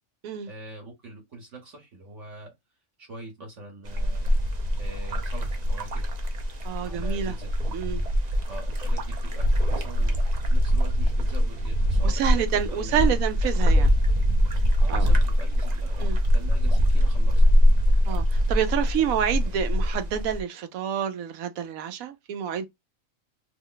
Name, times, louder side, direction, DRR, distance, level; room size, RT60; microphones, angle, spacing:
voice 1, 0.5-2.5 3.0-4.3 4.8-6.1 6.8-7.8 8.5-13.2 14.8-17.4 19.1-19.5, right 2 dB, 65° right, 1.3 m, -43 dB
sound 1, 3.9-20.4, equal, 45° right, 0.5 m, -23 dB
voice 2, 6.6-7.3 7.7-8.0 12.0-13.9 14.9-15.1 16.0-16.2 18.1-22.7, right 9 dB, 90° right, 1.1 m, -28 dB
2.9 x 2.1 x 3.8 m
omnidirectional pair, 1.4 m